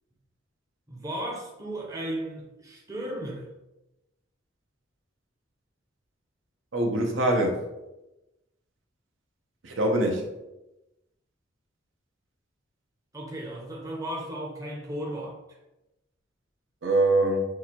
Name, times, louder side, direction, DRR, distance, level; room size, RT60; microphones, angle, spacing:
voice 1, 0.9-3.5 13.1-15.6, right 1 dB, 15° right, -2 dB, 0.7 m, -35 dB
voice 2, 6.7-7.6 9.6-10.3 16.8-17.4, right 1 dB, 75° right, 2 dB, 0.8 m, -23 dB
6.3 x 2.5 x 2.9 m, 0.97 s
head